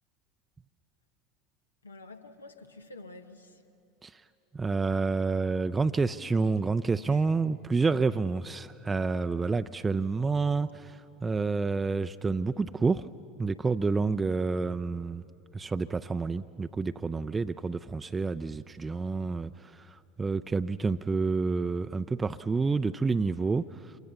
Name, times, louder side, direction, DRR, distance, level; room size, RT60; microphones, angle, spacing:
voice 1, 1.8-3.6 7.1-7.3, left 2 dB, 90° left, 1.2 m, -48 dB
voice 2, 4.5-13.1 13.4-15.2 15.5-24.0, right 4 dB, 20° right, 0.4 m, -29 dB
27.5 x 24.0 x 7.0 m
figure-of-eight pair, 80°, 0 cm